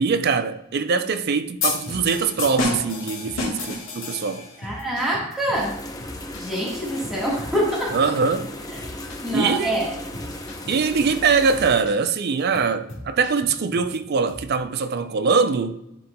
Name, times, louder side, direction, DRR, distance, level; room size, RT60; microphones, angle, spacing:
voice 1, 0.0-4.5 7.9-8.5 9.3-9.8 10.7-15.7, right 5 dB, 50° right, 0.4 m, -22 dB
sound 1, 1.6-4.7, left 4 dB, 80° left, 2.0 m, -29 dB
sound 2, 1.9-2.9 3.2-3.8 4.1-4.2 4.6-5.7 6.0-8.5 8.7-9.3 9.6-9.8 10.1-11.2 11.5-12.1 12.4-14.0 14.3-14.5, left 1 dB, 65° left, 1.4 m, -40 dB
voice 2, 4.6-5.8 6.4-8.1 9.2-9.9, right 1 dB, ahead, 1.4 m, -25 dB
sound 3, 5.5-11.8, left 1 dB, 20° left, 0.6 m, -36 dB
11.0 x 4.2 x 2.2 m
head